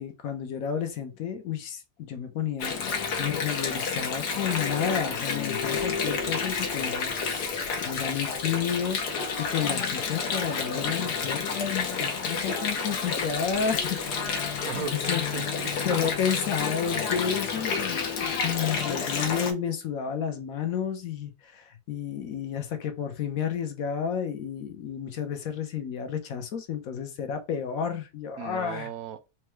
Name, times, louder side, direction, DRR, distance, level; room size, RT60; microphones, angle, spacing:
voice 1, 0.0-2.8 3.2-14.0 14.5-15.2 15.8-28.9, left 8 dB, 65° left, 1.1 m, -31 dB
Water, 2.6-19.5, left 5 dB, 85° left, 1.4 m, -30 dB
voice 2, 14.6-16.0 28.4-29.3, right 9 dB, 70° right, 0.9 m, -37 dB
4.4 x 2.3 x 3.0 m
omnidirectional pair, 1.7 m